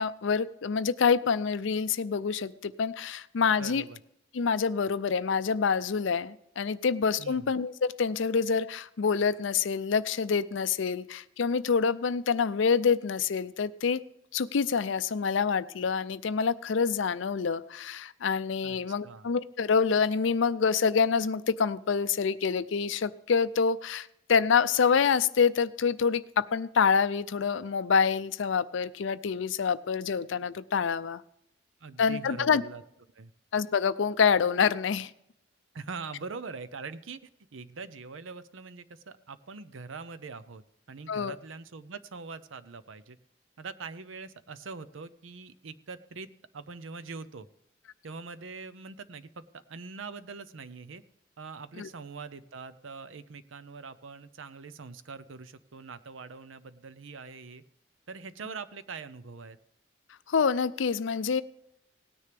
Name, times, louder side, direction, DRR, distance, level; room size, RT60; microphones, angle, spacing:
voice 1, 0.0-3.8 4.3-14.0 14.3-31.2 32.0-32.6 33.5-35.1 41.1-41.4 51.8-51.9 60.3-61.4, left 6 dB, 70° left, 15 dB, 0.5 m, -26 dB
voice 2, 3.6-4.0 7.2-7.5 18.6-18.8 19.0-19.3 31.8-32.8 33.1-33.3 35.7-37.2 37.5-43.2 43.6-46.3 46.5-47.5 48.0-51.0 51.4-57.6 58.1-59.6, right 4 dB, 80° right, 14 dB, 0.6 m, -43 dB
18.0 x 9.8 x 3.4 m, 0.78 s
head